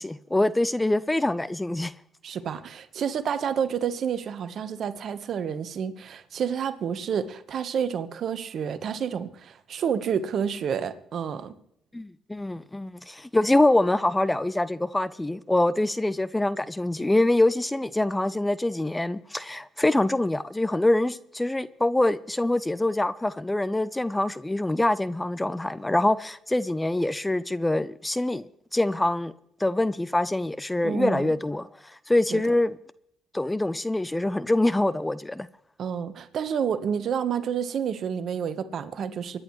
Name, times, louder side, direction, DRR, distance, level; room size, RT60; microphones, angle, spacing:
voice 1, 0.0-1.9 11.9-28.5 28.7-29.3 29.6-32.8 33.3-35.5, left 1 dB, 15° left, 0.6 m, -25 dB
voice 2, 2.2-11.5 30.8-31.3 32.3-32.4 35.8-39.4, right 7 dB, 60° right, 1.2 m, -29 dB
24.5 x 10.5 x 3.2 m
supercardioid pair, 65°, 0 cm